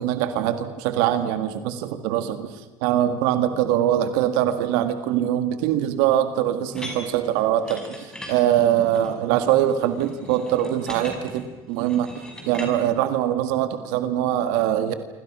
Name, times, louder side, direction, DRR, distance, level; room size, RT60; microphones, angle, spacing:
voice 1, 0.0-12.1 12.4-14.9, right 11 dB, 80° right, 9 dB, 1.8 m, -23 dB
sound 1, 6.7-12.7, equal, 5° left, 6.5 m, -39 dB
27.0 x 25.0 x 6.2 m, 1.1 s
supercardioid pair, 120°, 10 cm